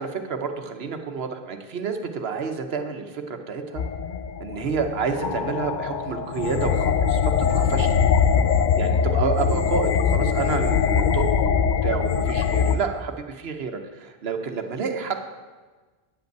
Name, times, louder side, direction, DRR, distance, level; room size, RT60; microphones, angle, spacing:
voice 1, 0.0-3.8 4.4-8.0 8.8-15.2, right 5 dB, 75° right, 6 dB, 1.1 m, -29 dB
sound 1, 3.8-12.8, left 7 dB, 55° left, 0.6 m, -22 dB
9.6 x 5.3 x 7.9 m, 1.3 s
omnidirectional pair, 1.1 m